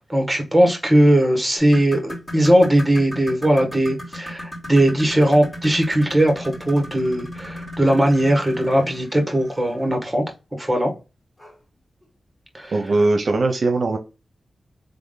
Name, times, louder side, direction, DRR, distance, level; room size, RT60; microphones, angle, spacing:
voice 1, 0.0-10.2 10.6-10.9 12.5-12.7, right 1 dB, 5° right, 1.6 m, -19 dB
sound 1, 1.6-10.0 11.4-11.5 12.0-12.1 12.7-12.8, left 1 dB, 25° left, 2.6 m, -36 dB
voice 2, 12.7-14.0, right 2 dB, 60° right, 0.6 m, -20 dB
3.8 x 3.5 x 3.9 m
wide cardioid pair, 95°, 0 cm